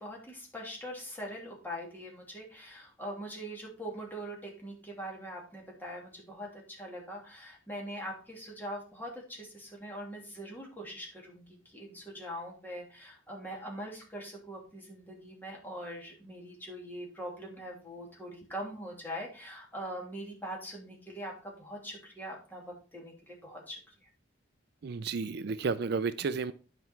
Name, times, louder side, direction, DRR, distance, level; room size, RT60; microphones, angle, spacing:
voice 1, 0.0-24.1, equal, 10° left, -2 dB, 2.9 m, -42 dB
voice 2, 24.8-26.5, right 4 dB, 55° right, 14 dB, 0.4 m, -32 dB
9.6 x 5.6 x 4.5 m, 0.37 s
head